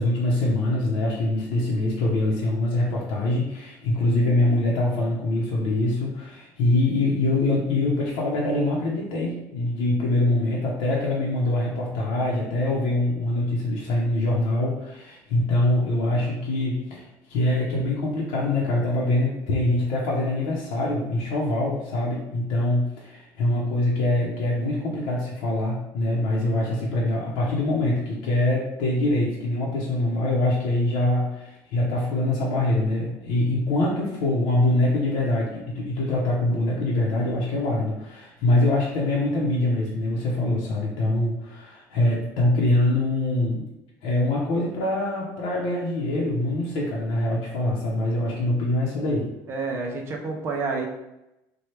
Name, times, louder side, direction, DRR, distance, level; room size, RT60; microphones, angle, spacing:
voice 1, 0.0-43.6 44.0-49.3, left 1 dB, 75° left, -5 dB, 0.8 m, -24 dB
voice 2, 49.5-50.9, right 4 dB, 35° right, 1 dB, 0.5 m, -29 dB
4.4 x 2.3 x 3.1 m, 0.92 s
cardioid pair, 155°, 8 cm